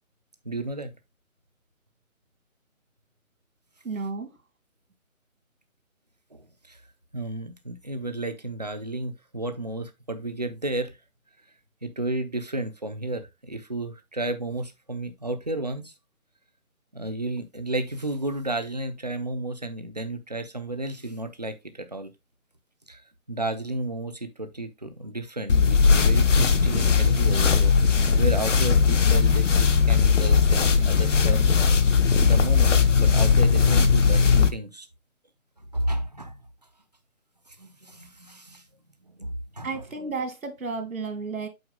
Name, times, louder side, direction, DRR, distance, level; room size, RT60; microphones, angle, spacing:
voice 1, 0.5-0.9 6.3-6.4 6.7-6.8 7.1-10.9 11.8-15.9 16.9-22.1 22.9-23.0 23.3-31.4 32.1-34.2 34.5-34.9 35.7-36.4 37.6-38.6 39.2-39.3 39.6-39.8, right 2 dB, 30° right, 0.6 m, -32 dB
voice 2, 3.8-4.3 39.6-41.5, right 4 dB, 75° right, 2.4 m, -32 dB
sound 1, 25.5-34.5, left 5 dB, 60° left, 1.0 m, -19 dB
7.9 x 4.8 x 3.6 m
hypercardioid pair, 175°, 42 cm